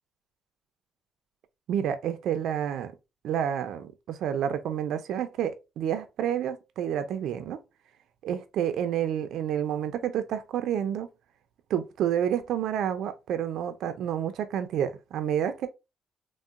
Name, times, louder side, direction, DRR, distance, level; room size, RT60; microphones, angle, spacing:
voice 1, 1.7-2.9 3.2-7.6 8.2-11.1 11.7-15.7, right 9 dB, 80° right, 0.3 m, -29 dB
3.7 x 2.0 x 2.3 m
cardioid pair, 90°, 0 cm